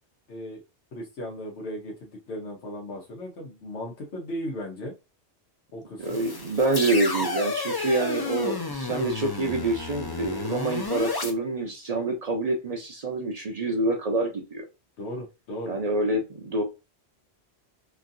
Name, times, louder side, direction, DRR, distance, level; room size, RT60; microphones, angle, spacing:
voice 1, 0.3-0.6 0.9-4.9 5.7-6.2 15.0-15.8, equal, 80° left, -2 dB, 1.2 m, -36 dB
sound 1, 6.0-11.3, left 3 dB, 35° left, 0.4 m, -32 dB
voice 2, 6.0-14.7 15.7-16.6, right 2 dB, 45° right, 3 dB, 0.6 m, -27 dB
3.0 x 2.6 x 2.5 m, 0.27 s
omnidirectional pair, 1.1 m